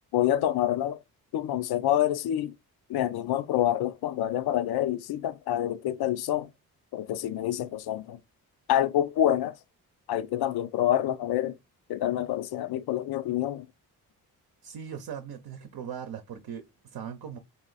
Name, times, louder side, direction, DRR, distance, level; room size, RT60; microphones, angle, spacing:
voice 1, 0.1-1.0 1.3-2.5 2.9-6.5 6.9-8.2 8.7-9.6 10.1-11.6 11.9-13.7, left 12 dB, 75° left, 0.5 m, -27 dB
voice 2, 14.6-17.4, right 8 dB, 70° right, 0.7 m, -39 dB
2.9 x 2.7 x 4.0 m
cardioid pair, 60°, 38 cm